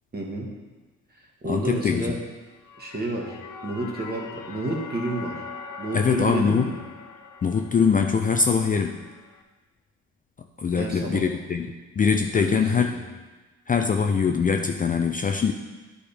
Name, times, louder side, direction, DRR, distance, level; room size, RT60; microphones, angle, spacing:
voice 1, 0.1-0.5 1.4-2.2 2.8-3.4 3.6-5.4 5.8-6.7 10.7-11.3 12.3-12.9, right 2 dB, 30° right, -1 dB, 1.7 m, -30 dB
voice 2, 1.4-2.2 5.9-6.7 7.4-9.0 10.6-11.7 12.0-12.9 13.7-15.5, left 5 dB, 30° left, 5 dB, 0.4 m, -22 dB
sound 1, 2.5-9.4, left 5 dB, 80° left, 0.7 m, -42 dB
10.5 x 5.1 x 3.4 m, 1.3 s
cardioid pair, 90°, 30 cm